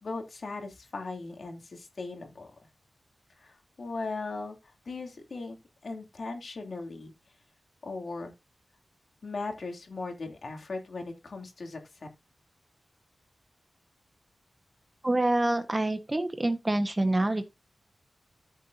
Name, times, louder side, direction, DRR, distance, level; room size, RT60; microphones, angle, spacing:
voice 1, 0.0-2.5 3.4-4.6 4.8-5.6 5.8-7.1 7.8-8.3 9.2-11.8, left 3 dB, 55° left, 3.0 m, -38 dB
voice 2, 15.0-17.5, right 1 dB, 20° right, 1.3 m, -26 dB
14.0 x 7.0 x 2.8 m
wide cardioid pair, 130°, 0 cm